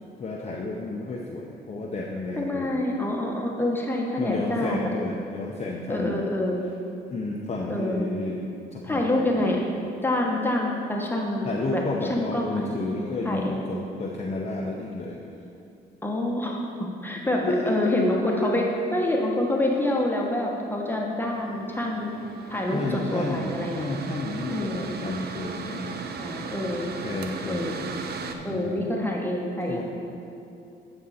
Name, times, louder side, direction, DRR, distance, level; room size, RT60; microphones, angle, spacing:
voice 1, 0.2-2.8 4.2-6.3 7.1-8.4 8.7-9.6 11.4-15.2 17.5-18.1 18.4-18.5 22.7-26.1 27.0-27.9 28.2-28.9 29.7-29.8, left 2 dB, 35° left, -2 dB, 0.8 m, -31 dB
voice 2, 2.4-4.9 5.9-6.6 7.7-8.1 8.8-9.6 10.0-11.8 12.1-12.7 13.2-13.6 16.0-18.6 18.9-22.1 22.5-23.9 24.5-24.9 26.2-26.9 27.5-27.9 28.4-29.8, left 1 dB, 10° left, -1 dB, 1.3 m, -27 dB
Mechanical fan, 21.3-28.4, right 5 dB, 50° right, 0.7 m, -37 dB
9.2 x 5.3 x 4.2 m, 2.7 s
supercardioid pair, 65°, 20 cm